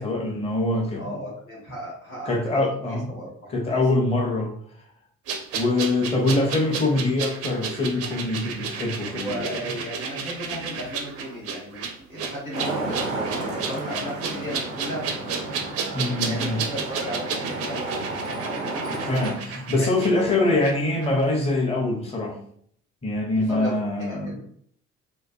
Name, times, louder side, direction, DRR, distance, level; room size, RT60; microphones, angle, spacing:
voice 1, 0.0-1.1 2.3-3.2 3.5-4.6 5.5-9.6 12.1-12.2 15.9-16.6 18.9-22.4 23.0-24.3, left 2 dB, 15° left, 1 dB, 0.6 m, -24 dB
voice 2, 1.0-3.8 9.1-15.4 16.3-18.9 19.8-20.6 23.3-24.4, equal, 90° left, -6 dB, 0.9 m, -35 dB
sound 1, 5.3-20.7 21.0-21.1, right 6 dB, 40° right, 0.4 m, -33 dB
Traffic noise roadway noise, 12.5-19.4, right 2 dB, 90° right, 0.5 m, -32 dB
2.3 x 2.2 x 2.5 m, 0.62 s
figure-of-eight pair, 55°, 40 cm